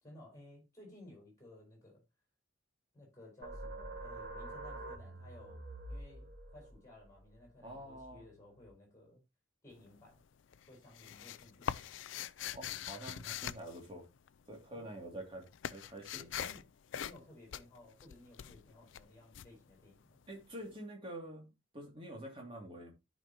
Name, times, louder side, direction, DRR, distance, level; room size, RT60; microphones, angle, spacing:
voice 1, 0.0-2.0 2.9-5.6 5.9-9.2 9.6-10.2 10.7-11.9 14.7-14.9 16.1-16.7 17.0-20.2, left 1 dB, 15° left, 5.1 m, -57 dB
sound 1, 3.4-8.7, right 2 dB, 60° right, 1.7 m, -47 dB
voice 2, 7.6-8.3 12.5-14.1 14.5-16.3 20.3-22.9, right 1 dB, 25° right, 2.6 m, -47 dB
sound 2, 9.7-10.2 10.5-14.6 14.9-20.4, left 9 dB, 75° left, 0.4 m, -43 dB
12.5 x 5.4 x 2.9 m
head